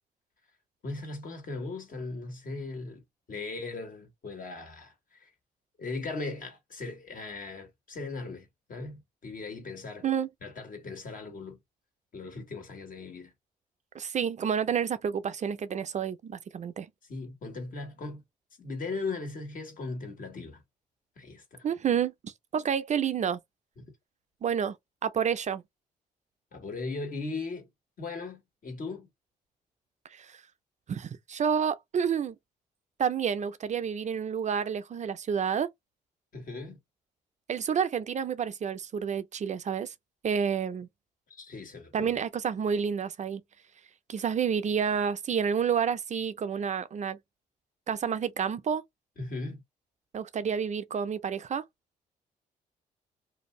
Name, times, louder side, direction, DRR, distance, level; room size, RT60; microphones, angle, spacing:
voice 1, 0.8-3.0 3.3-5.3 5.8-10.1 10.4-11.6 12.1-13.3 17.0-18.2 18.6-20.6 21.2-21.7 23.8-23.9 26.5-27.7 28.0-29.1 36.3-36.8 41.3-42.1 49.2-49.6, left 3 dB, 55° left, 1.5 m, -38 dB
voice 2, 13.9-16.9 21.6-23.4 24.4-24.8 25.0-25.6 30.1-30.3 30.9-32.4 33.0-35.7 37.5-39.9 40.2-40.9 41.9-43.4 44.1-47.2 47.9-48.8 50.1-51.6, right 7 dB, 45° right, 0.5 m, -29 dB
2.6 x 2.4 x 3.0 m
supercardioid pair, 60°, 17 cm